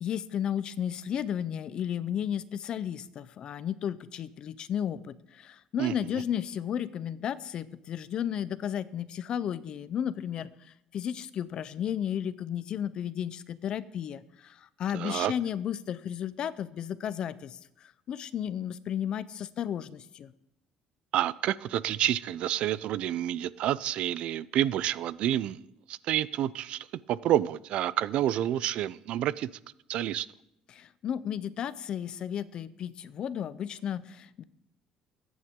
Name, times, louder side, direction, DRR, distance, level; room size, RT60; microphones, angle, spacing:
voice 1, 0.0-10.5 10.9-17.6 18.1-20.3 30.7-34.4, left 9 dB, 40° left, 16 dB, 0.5 m, -33 dB
voice 2, 5.8-6.2 14.9-15.3 21.1-29.5 29.9-30.3, right 12 dB, 55° right, 19 dB, 0.4 m, -29 dB
22.0 x 9.4 x 3.7 m, 0.81 s
cardioid pair, 165°, 2 cm